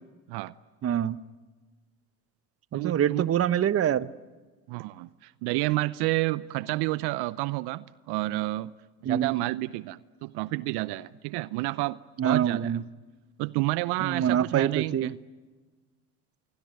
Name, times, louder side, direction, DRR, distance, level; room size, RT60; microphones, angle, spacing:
voice 1, 0.8-1.2 2.7-4.1 9.0-9.3 12.2-12.8 14.0-15.2, right 9 dB, 35° right, 16 dB, 0.9 m, -25 dB
voice 2, 2.7-3.3 4.7-8.7 9.0-12.8 13.4-15.1, right 20 dB, 65° right, 18 dB, 0.8 m, -30 dB
26.5 x 23.5 x 9.3 m, 1.3 s
hypercardioid pair, 80°, 43 cm